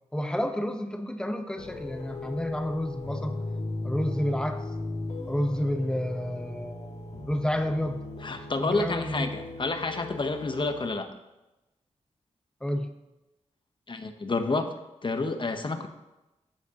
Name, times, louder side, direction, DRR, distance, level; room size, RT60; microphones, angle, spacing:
voice 1, 0.1-3.4 3.8-4.6 5.3-8.0 8.6-9.3 12.6-12.9, equal, 5° left, 5 dB, 1.0 m, -30 dB
sound 1, 1.6-10.9, left 2 dB, 60° left, 1.9 m, -37 dB
voice 2, 8.2-11.2 13.9-14.7 15.0-15.9, left 3 dB, 40° left, 7 dB, 0.9 m, -29 dB
14.5 x 5.0 x 2.9 m, 0.99 s
cardioid pair, 60°, 12 cm